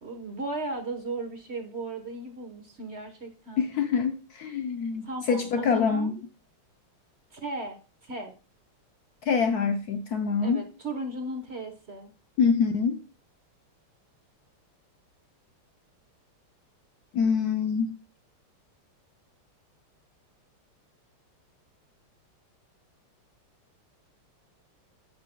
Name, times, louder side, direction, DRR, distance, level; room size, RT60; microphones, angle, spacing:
voice 1, 0.0-3.7 5.0-6.2 7.3-8.3 10.4-12.1, right 2 dB, 40° right, 1.0 m, -36 dB
voice 2, 3.6-6.1 9.3-10.7 12.4-13.0 17.1-17.9, left 6 dB, 75° left, 0.8 m, -25 dB
14.5 x 6.0 x 2.2 m
omnidirectional pair, 2.4 m